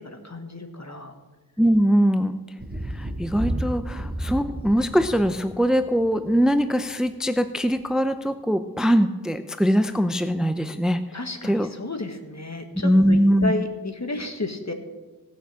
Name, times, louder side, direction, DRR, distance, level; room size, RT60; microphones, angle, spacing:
voice 1, 0.2-1.1 11.1-14.7, left 2 dB, 45° left, 5 dB, 1.7 m, -32 dB
voice 2, 1.6-2.3 2.9-11.0 11.4-11.7 12.7-13.6, equal, ahead, 10 dB, 0.6 m, -22 dB
Thunder, 2.6-6.5 7.8-7.9, right 1 dB, 25° right, 1.9 m, -32 dB
18.0 x 7.0 x 7.5 m, 1.2 s
wide cardioid pair, 45°, 36 cm